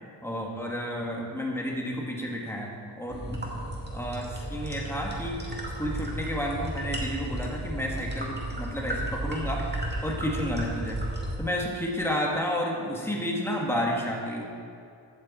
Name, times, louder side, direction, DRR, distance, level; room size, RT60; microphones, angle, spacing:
voice 1, 0.2-3.6 3.9-5.5 5.8-9.7 10.0-11.0 11.4-14.4, equal, 5° left, -1 dB, 1.4 m, -31 dB
sound 1, 3.1-11.4, right 1 dB, 20° right, 1.7 m, -33 dB
15.5 x 6.5 x 4.1 m, 2.4 s
wide cardioid pair, 155°, 49 cm